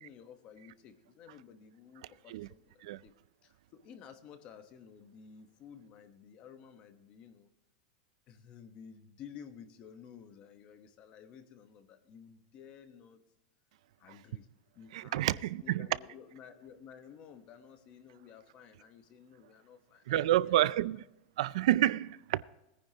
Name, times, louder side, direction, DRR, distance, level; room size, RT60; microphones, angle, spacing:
voice 1, 0.0-3.1 3.4-7.5 8.3-13.2 14.0-14.5 14.7-20.9, left 7 dB, 25° left, 1.0 m, -53 dB
voice 2, 14.9-15.9 20.1-21.0 21.4-22.4, right 14 dB, 60° right, 0.3 m, -29 dB
20.5 x 9.8 x 2.8 m
supercardioid pair, 175°, 4 cm